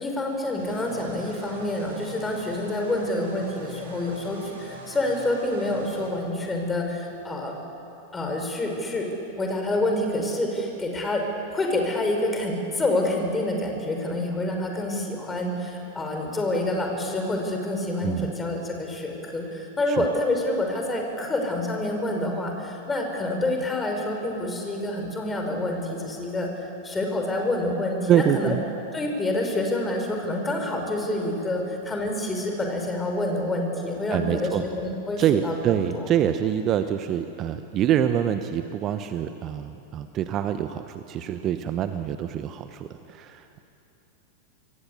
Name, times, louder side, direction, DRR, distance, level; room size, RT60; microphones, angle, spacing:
voice 1, 0.0-7.5 8.1-9.1 9.3-11.2 11.5-26.5 26.8-28.6 28.9-36.1, left 1 dB, 15° left, 3 dB, 5.6 m, -27 dB
sound 1, 0.6-6.1, right 1 dB, 60° right, 7.5 m, -43 dB
voice 2, 18.0-18.3 19.9-20.0 28.1-28.6 34.1-34.6 35.2-43.6, right 10 dB, 35° right, 9 dB, 1.0 m, -25 dB
27.0 x 23.0 x 8.3 m, 2.9 s
figure-of-eight pair, 90°, 0 cm